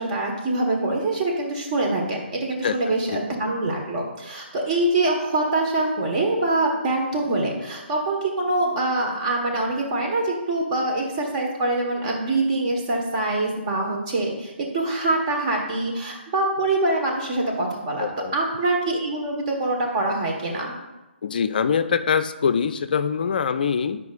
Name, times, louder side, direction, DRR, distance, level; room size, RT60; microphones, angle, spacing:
voice 1, 0.0-20.7, right 2 dB, 35° right, 0 dB, 1.4 m, -24 dB
voice 2, 2.6-3.3 18.0-18.3 21.2-24.0, left 6 dB, 50° left, 11 dB, 0.4 m, -24 dB
9.5 x 5.1 x 2.5 m, 1.0 s
figure-of-eight pair, 140°, 6 cm